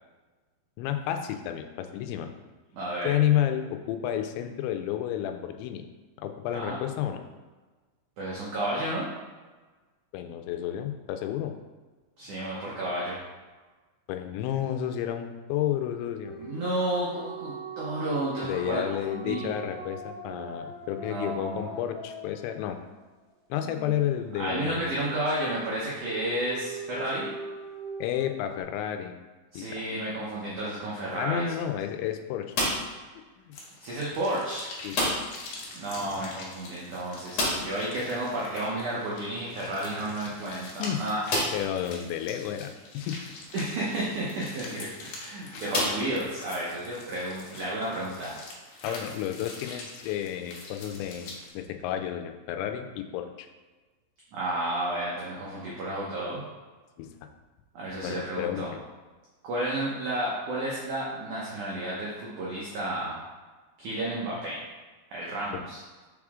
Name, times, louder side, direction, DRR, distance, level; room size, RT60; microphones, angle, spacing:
voice 1, 0.8-2.3 3.0-5.8 6.2-7.2 10.1-11.6 14.1-16.4 18.4-22.8 23.5-24.9 28.0-29.2 29.6-29.8 31.2-32.5 33.4-33.6 34.8-35.2 40.8-41.1 41.5-43.2 45.5-45.6 48.8-53.5 57.0-57.3 58.0-58.8, left 10 dB, 85° left, 7 dB, 2.9 m, -31 dB
voice 2, 2.7-3.1 6.5-6.7 8.2-9.1 12.2-13.2 16.4-19.5 21.0-21.8 23.6-23.9 24.3-27.3 29.5-31.5 33.8-34.7 35.7-41.2 43.5-48.3 54.3-56.4 57.7-58.7 59.4-63.2 63.8-64.6 65.1-65.8, right 1 dB, 90° right, -6 dB, 1.7 m, -32 dB
sound 1, 16.2-23.2 25.8-28.6, right 3 dB, 40° right, 1.9 m, -41 dB
sound 2, 32.5-33.1 34.9-35.5 35.7-35.8 36.1-36.2 37.3-37.9 39.6-39.7 40.4-40.5 41.3-41.8 42.5-42.6 44.6-44.8 45.7-46.6, left 1 dB, 50° left, 2.2 m, -29 dB
sound 3, 33.5-51.5, left 2 dB, 70° left, 2.2 m, -45 dB
6.6 x 4.9 x 3.6 m, 1.3 s
omnidirectional pair, 5.1 m